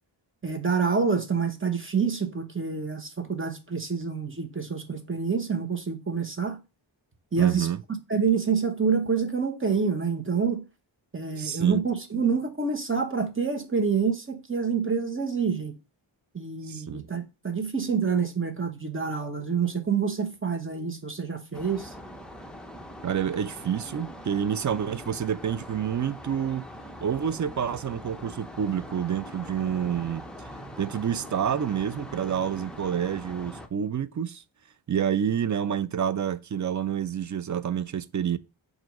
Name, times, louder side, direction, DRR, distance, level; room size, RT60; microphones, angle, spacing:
voice 1, 0.4-6.6 7.3-7.7 8.1-10.6 11.1-15.8 16.3-21.9, right 5 dB, 25° right, 1.0 m, -27 dB
voice 2, 7.4-7.8 11.4-11.8 16.7-17.1 23.0-26.6 27.0-30.2 30.8-34.4 34.9-38.4, right 8 dB, 40° right, 0.4 m, -28 dB
sound 1, 21.5-33.7, equal, ahead, 0.7 m, -42 dB
7.6 x 2.7 x 5.2 m
wide cardioid pair, 135°, 48 cm